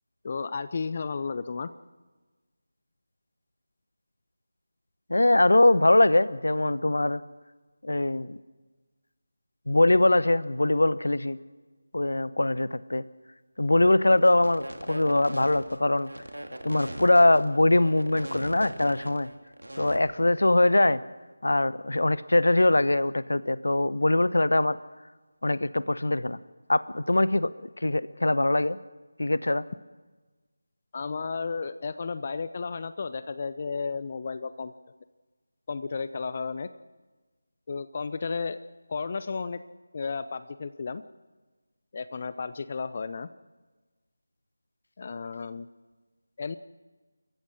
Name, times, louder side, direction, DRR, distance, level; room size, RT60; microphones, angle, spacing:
voice 1, 0.2-1.7 30.9-34.7 35.7-36.7 37.7-38.6 38.9-39.6 39.9-41.0 41.9-43.3 45.0-45.7 46.4-46.6, left 4 dB, 35° left, 13 dB, 0.6 m, -33 dB
voice 2, 5.1-7.2 7.8-8.4 9.7-11.4 11.9-13.0 13.6-16.1 16.6-19.3 19.8-21.0 21.4-24.8 25.4-26.4 26.7-27.5 27.8-28.8 29.2-29.7, left 2 dB, 65° left, 17 dB, 0.9 m, -22 dB
sound 1, 14.2-20.0, right 1 dB, 80° right, 2.7 m, -40 dB
28.5 x 14.5 x 6.4 m, 1.3 s
figure-of-eight pair, 160°, 0 cm